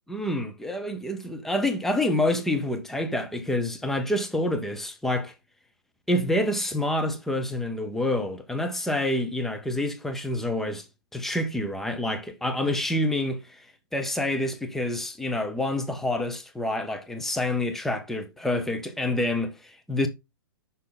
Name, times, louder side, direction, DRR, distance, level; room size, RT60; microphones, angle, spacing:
voice 1, 0.1-5.3 6.1-10.8 11.1-13.6 13.9-20.1, left 1 dB, ahead, 0.8 m, -27 dB
6.4 x 5.6 x 4.0 m
hypercardioid pair, 140°, 13 cm